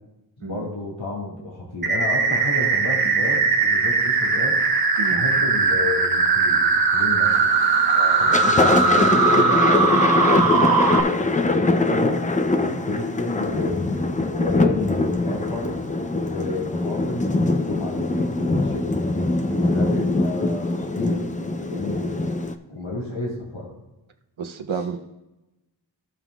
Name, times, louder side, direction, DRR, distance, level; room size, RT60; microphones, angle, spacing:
voice 1, 0.4-4.6 5.1-7.5 8.2-12.2 12.7-15.8 16.2-19.0 19.6-21.3 21.6-22.3 22.7-23.7, left 2 dB, 75° left, -4 dB, 1.9 m, -32 dB
sound 1, 1.8-11.0, right 4 dB, 50° right, 0.9 m, -19 dB
Thunder, 7.3-7.7 8.1-22.5, left 2 dB, 15° left, 0.5 m, -23 dB
voice 2, 7.8-8.3 12.6-12.9 19.5-19.7 24.4-25.0, right 5 dB, 80° right, 6 dB, 0.8 m, -32 dB
15.5 x 5.7 x 2.3 m, 0.98 s
wide cardioid pair, 75°, 47 cm